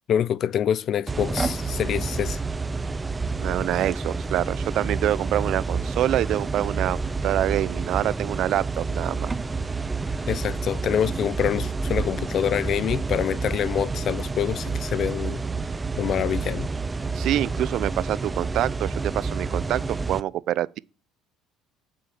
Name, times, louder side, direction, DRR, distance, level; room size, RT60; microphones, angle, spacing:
voice 1, 0.1-2.4 10.3-15.4 16.0-16.7, left 9 dB, 55° left, 0.6 m, -26 dB
sound 1, 1.1-20.2, right 4 dB, 20° right, 0.8 m, -29 dB
voice 2, 3.4-9.3 17.1-20.8, right 13 dB, 60° right, 0.6 m, -26 dB
9.2 x 7.5 x 7.8 m
supercardioid pair, 80°, 0 cm